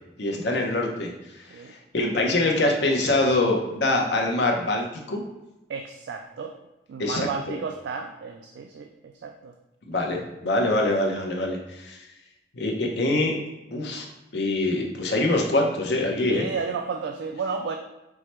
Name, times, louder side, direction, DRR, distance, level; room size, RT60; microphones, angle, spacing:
voice 1, 0.2-1.1 1.9-5.2 7.0-7.6 9.9-12.0 12.6-13.4 13.7-14.1 14.3-16.5, left 2 dB, 75° left, 0 dB, 0.7 m, -24 dB
voice 2, 5.7-6.5 6.9-8.9 9.2-9.5 16.3-17.8, right 5 dB, 80° right, 4 dB, 0.3 m, -32 dB
4.6 x 2.2 x 4.2 m, 0.96 s
head